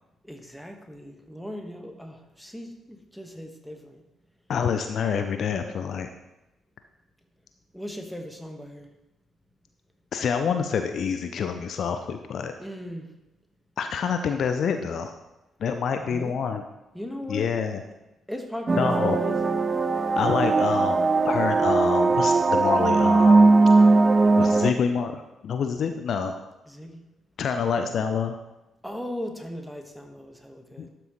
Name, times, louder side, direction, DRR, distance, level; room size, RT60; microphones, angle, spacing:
voice 1, 0.2-4.0 7.7-8.9 12.6-13.1 16.0-16.4 16.9-17.5 18.3-19.6 26.7-27.0 27.8-28.0 28.8-30.9, equal, ahead, 4 dB, 1.4 m, -38 dB
voice 2, 4.5-6.1 10.1-12.5 13.8-15.1 15.6-16.6 17.3-17.8 18.8-19.2 20.2-23.5 24.4-26.4 27.4-28.4 30.8-30.9, left 6 dB, 55° left, 7 dB, 0.5 m, -27 dB
sound 1, 18.7-24.7, right 3 dB, 35° right, 0.5 m, -19 dB
12.0 x 6.1 x 3.1 m, 0.98 s
figure-of-eight pair, 45°, 0 cm